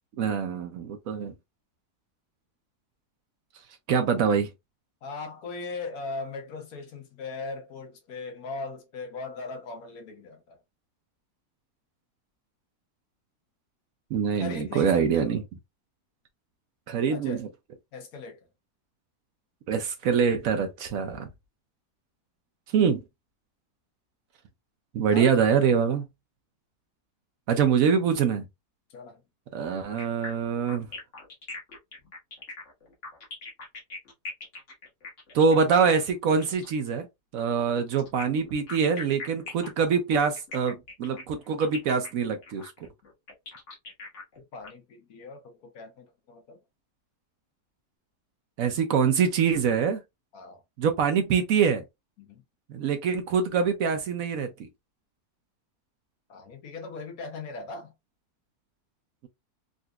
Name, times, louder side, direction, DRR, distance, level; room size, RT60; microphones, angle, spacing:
voice 1, 0.2-1.3 3.9-4.5 14.1-15.4 16.9-17.5 19.7-21.3 22.7-23.0 24.9-26.1 27.5-28.5 29.5-30.9 35.3-37.1 37.3-42.7 48.6-50.0 50.8-51.8 52.7-54.5, right 6 dB, 70° right, 0.9 m, -24 dB
voice 2, 5.0-10.6 14.3-15.4 17.1-17.5 17.9-18.5 25.1-25.6 28.9-29.2 44.5-46.6 50.3-50.6 52.2-52.4 56.3-57.9, left 3 dB, 65° left, 1.3 m, -39 dB
sound 1, 30.0-36.8 38.0-44.7, left 3 dB, 50° left, 1.5 m, -41 dB
3.8 x 2.5 x 2.2 m
omnidirectional pair, 1.7 m